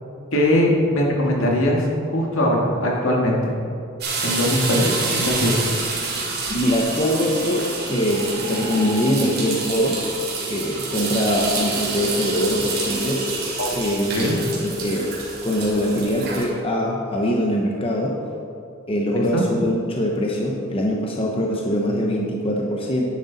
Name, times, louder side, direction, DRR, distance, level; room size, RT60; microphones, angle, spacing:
voice 1, 0.3-3.5 4.2-5.5 13.6-13.7 14.1-14.4 19.3-19.5, left 1 dB, 70° left, -1 dB, 2.1 m, -20 dB
sound 1, 4.0-16.5, right 3 dB, 50° right, 2.7 m, -27 dB
voice 2, 6.5-10.0 10.5-13.3 13.7-15.1 15.4-18.2 18.9-23.0, equal, 25° left, -1 dB, 0.9 m, -23 dB
10.5 x 10.5 x 4.1 m, 2.6 s
head